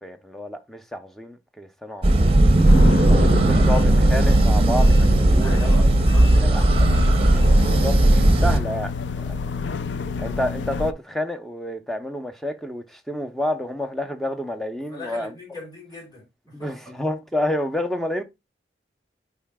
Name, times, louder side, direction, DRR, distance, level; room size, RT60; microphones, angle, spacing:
voice 1, 0.0-2.4 3.1-5.7 6.3-6.9 7.5-9.6 10.2-15.3 16.5-18.2, left 1 dB, ahead, 0.6 m, -29 dB
sound 1, 2.0-8.6, right 1 dB, 30° right, 0.7 m, -16 dB
sound 2, 2.7-10.9, left 6 dB, 90° left, 0.4 m, -30 dB
voice 2, 5.4-6.7 14.9-16.8, left 2 dB, 20° left, 4.4 m, -40 dB
11.0 x 4.7 x 2.2 m
head